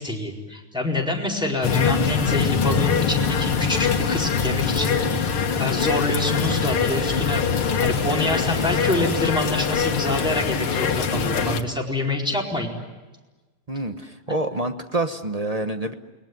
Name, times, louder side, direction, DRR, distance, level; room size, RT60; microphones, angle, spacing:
voice 1, 0.0-12.7, left 2 dB, ahead, -2 dB, 4.5 m, -26 dB
sound 1, 1.6-11.6, left 6 dB, 90° left, 2.5 m, -23 dB
voice 2, 13.7-15.9, right 2 dB, 25° right, 7 dB, 0.8 m, -27 dB
29.5 x 20.5 x 9.6 m, 1.2 s
omnidirectional pair, 2.3 m